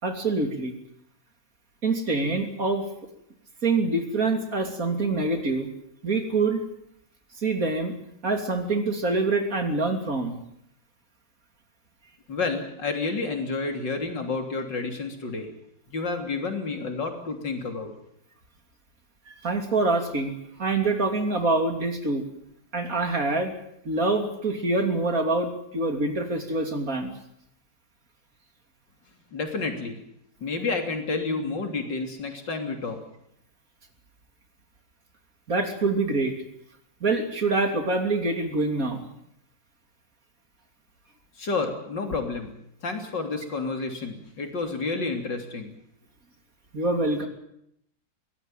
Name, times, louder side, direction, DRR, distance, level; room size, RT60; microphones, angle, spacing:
voice 1, 0.0-0.7 1.8-2.8 3.6-5.7 6.0-6.6 7.4-7.9 8.2-10.4 19.3-20.3 20.6-22.2 22.7-23.5 23.8-27.1 35.5-36.4 37.0-39.0 46.7-47.3, right 3 dB, 50° right, 5 dB, 3.4 m, -25 dB
voice 2, 12.3-15.5 15.9-17.9 29.3-30.0 30.4-33.0 41.4-42.5 42.8-45.7, left 3 dB, 70° left, 5 dB, 3.9 m, -30 dB
22.0 x 18.0 x 9.1 m, 0.75 s
omnidirectional pair, 2.0 m